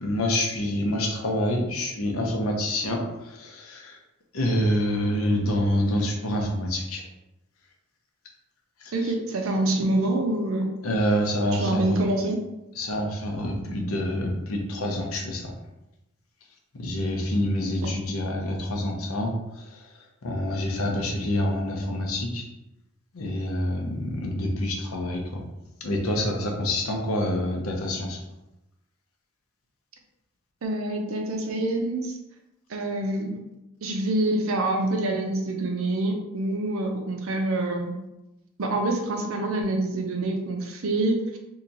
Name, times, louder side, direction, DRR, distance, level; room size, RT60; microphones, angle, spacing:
voice 1, 0.0-4.0 4.3-7.0 8.8-8.9 10.8-12.0 12.8-15.5 16.8-19.3 19.7-19.8 20.2-22.4 23.1-25.4 25.8-28.2, left 1 dB, 90° left, 1 dB, 0.7 m, -27 dB
voice 2, 8.9-10.7 11.5-12.4 17.6-17.9 30.6-32.1 32.7-33.4 33.8-37.9 38.6-41.4, right 2 dB, 75° right, 3 dB, 0.6 m, -26 dB
2.8 x 2.3 x 3.9 m, 0.92 s
head